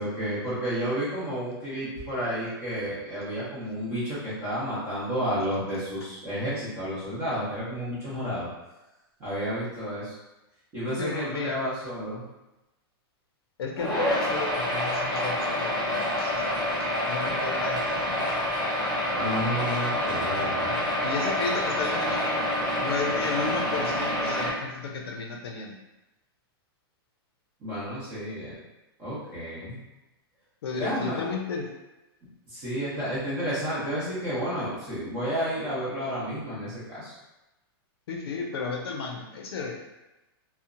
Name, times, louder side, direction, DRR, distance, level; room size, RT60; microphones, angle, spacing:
voice 1, 0.0-8.5 9.2-10.1 10.7-12.2 19.2-20.8 27.6-28.6 29.0-29.8 30.7-31.2 32.5-37.1, equal, 20° right, -10 dB, 0.8 m, -31 dB
voice 2, 8.0-8.4 11.0-11.6 13.6-16.5 16.8-17.9 21.0-22.5 22.8-25.8 30.6-31.7 38.1-39.8, left 4 dB, 75° left, 1 dB, 0.5 m, -33 dB
sound 1, 13.8-24.5, left 1 dB, 5° left, 0.4 m, -27 dB
2.8 x 2.0 x 2.5 m, 1.0 s
supercardioid pair, 175°, 13 cm